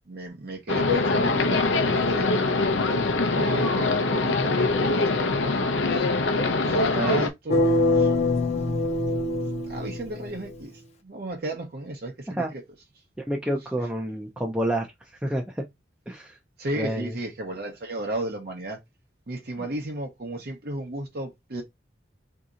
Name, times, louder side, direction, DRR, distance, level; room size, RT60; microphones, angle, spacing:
voice 1, 0.1-5.5 5.9-6.2 6.7-8.1 9.6-12.6 16.6-18.8 19.3-21.6, right 1 dB, 55° right, 0.7 m, -34 dB
sound 1, 0.7-7.3, left 3 dB, 85° left, 0.6 m, -23 dB
sound 2, 7.5-10.5, left 2 dB, 35° left, 0.6 m, -24 dB
voice 2, 13.3-14.9 15.2-15.6 16.1-16.4 16.8-17.1 19.6-19.7, right 1 dB, 5° right, 0.5 m, -28 dB
3.9 x 2.8 x 2.4 m
head